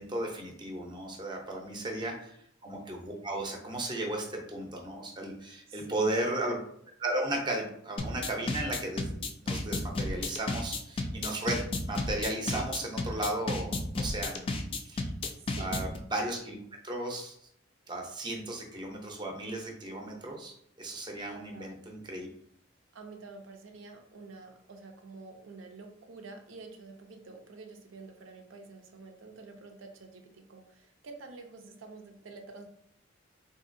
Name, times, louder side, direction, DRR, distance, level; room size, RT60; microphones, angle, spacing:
voice 1, 0.0-2.3 2.6-6.6 7.0-9.1 9.4-15.1 15.6-16.5 16.8-17.3 17.9-22.3, right 1 dB, 25° right, 1 dB, 0.6 m, -35 dB
voice 2, 5.7-6.3 15.3-15.8 21.3-21.8 22.9-32.7, right 3 dB, 85° right, 4 dB, 0.5 m, -49 dB
sound 1, 8.0-16.0, left 2 dB, 30° left, 0.3 m, -32 dB
3.7 x 2.7 x 2.5 m, 0.70 s
head